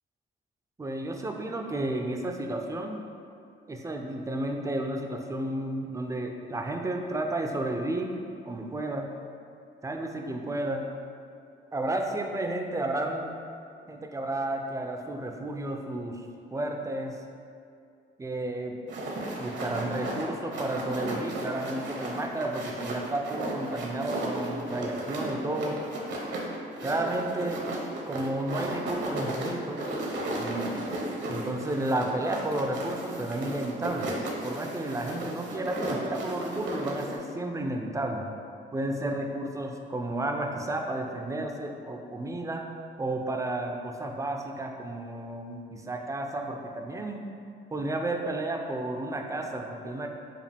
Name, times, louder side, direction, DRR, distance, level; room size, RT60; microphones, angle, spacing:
voice 1, 0.8-3.0 3.7-8.1 8.5-9.1 9.8-10.8 11.7-13.3 13.9-16.2 16.5-17.2 18.2-18.8 19.4-25.8 26.8-27.6 28.1-29.8 30.3-30.7 31.3-38.3 38.7-42.7 43.0-47.3 47.7-50.4, right 1 dB, 15° right, 3 dB, 0.4 m, -32 dB
sound 1, 18.9-37.2, right 1 dB, 65° right, 0.7 m, -35 dB
4.9 x 2.4 x 3.4 m, 2.4 s
cardioid pair, 90°, 20 cm